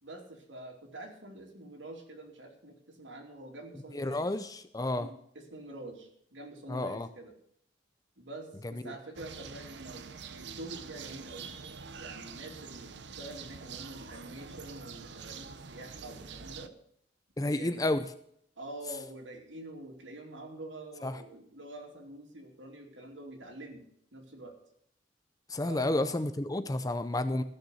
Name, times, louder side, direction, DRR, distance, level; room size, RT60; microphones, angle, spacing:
voice 1, 0.0-4.3 5.0-7.3 8.2-10.1 10.3-11.5 12.0-16.7 17.4-17.8 18.6-23.8 24.1-24.5 25.6-26.1, right 2 dB, 90° right, 0 dB, 2.9 m, -46 dB
voice 2, 3.9-5.1 6.7-7.1 17.4-18.0 21.0-21.1 25.5-27.4, left 1 dB, 20° left, 11 dB, 0.6 m, -30 dB
sound 1, 9.1-16.7, right 5 dB, 65° right, 0.8 m, -45 dB
14.5 x 6.7 x 7.9 m, 0.67 s
head